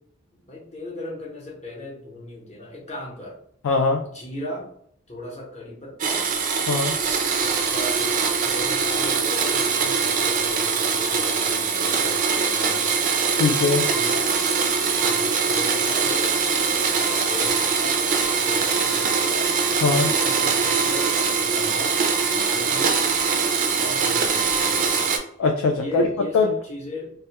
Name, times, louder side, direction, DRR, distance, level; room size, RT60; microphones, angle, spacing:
voice 1, 0.4-3.4 4.0-4.7 5.1-6.3 7.4-8.1 8.4-12.9 13.8-14.5 15.0-19.6 19.9-23.1 23.7-25.0 25.7-27.1, left 1 dB, 35° left, -3 dB, 0.8 m, -37 dB
voice 2, 3.6-4.0 6.7-6.9 13.3-13.9 19.8-20.1 25.4-26.1 26.3-26.5, left 4 dB, 70° left, 3 dB, 0.3 m, -21 dB
Domestic sounds home sounds, 6.0-25.2, right 5 dB, 40° right, 0.3 m, -22 dB
2.3 x 2.1 x 2.8 m, 0.68 s
head